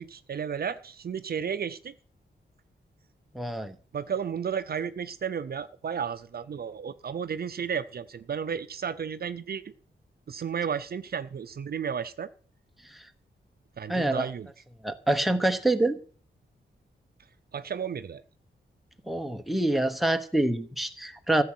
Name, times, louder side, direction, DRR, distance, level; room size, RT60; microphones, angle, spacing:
voice 1, 0.0-1.9 3.9-9.6 10.3-12.3 13.8-14.5 17.5-18.2, right 7 dB, 55° right, 13 dB, 0.7 m, -33 dB
voice 2, 3.3-3.8 13.9-14.3 14.8-16.0 19.1-21.4, right 1 dB, ahead, 7 dB, 1.0 m, -26 dB
14.5 x 7.6 x 6.1 m, 0.42 s
wide cardioid pair, 155°, 19 cm